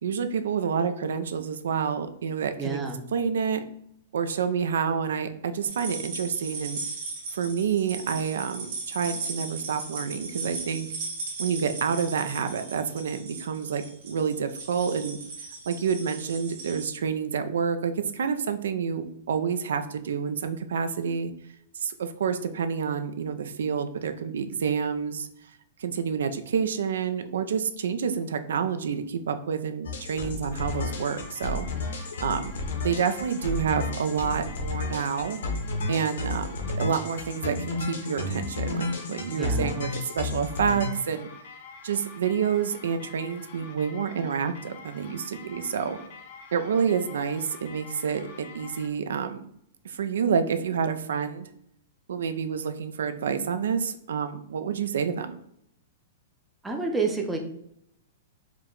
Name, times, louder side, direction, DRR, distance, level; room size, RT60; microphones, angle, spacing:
voice 1, 0.0-2.8 3.1-3.6 4.1-6.8 7.3-10.9 11.4-15.2 15.7-21.3 21.8-25.3 25.8-31.7 32.2-32.5 32.8-35.4 35.9-41.3 41.8-46.0 46.5-49.5 49.8-51.5 52.1-55.4, right 6 dB, 90° right, 9 dB, 0.4 m, -28 dB
voice 2, 2.6-3.0 39.3-39.7 56.6-57.4, right 3 dB, 5° right, 1 dB, 0.4 m, -29 dB
sound 1, 5.7-16.8, right 3 dB, 45° right, 1.2 m, -37 dB
sound 2, 29.8-40.9, left 2 dB, 75° left, 0.8 m, -32 dB
sound 3, 30.5-48.9, left 5 dB, 40° left, 0.5 m, -47 dB
4.5 x 2.2 x 3.8 m, 0.73 s
hypercardioid pair, 175°, 0 cm